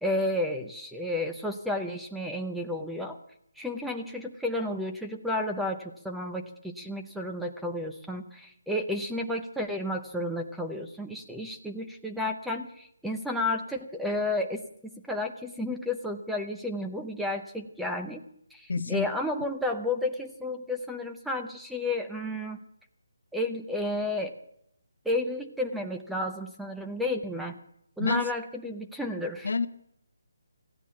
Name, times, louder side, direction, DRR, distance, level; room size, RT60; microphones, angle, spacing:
voice 1, 0.0-3.2 3.6-18.2 18.5-22.6 23.3-24.3 25.0-27.6 28.0-29.5, left 1 dB, ahead, 3 dB, 0.7 m, -32 dB
voice 2, 18.7-19.1 28.0-28.3 29.4-29.7, left 4 dB, 70° left, 13 dB, 1.0 m, -27 dB
15.5 x 9.9 x 8.4 m, 0.73 s
hypercardioid pair, 170°, 0 cm